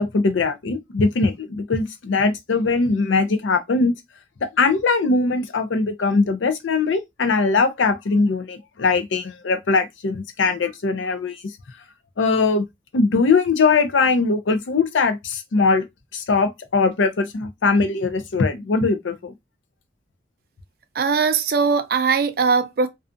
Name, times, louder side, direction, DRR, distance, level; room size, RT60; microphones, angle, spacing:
voice 1, 0.0-4.0 4.4-11.4 12.2-12.6 12.9-15.9 16.1-19.3, left 4 dB, 90° left, 0.5 m, -21 dB
voice 2, 21.0-22.9, right 5 dB, 55° right, 0.4 m, -20 dB
2.4 x 2.4 x 2.4 m
head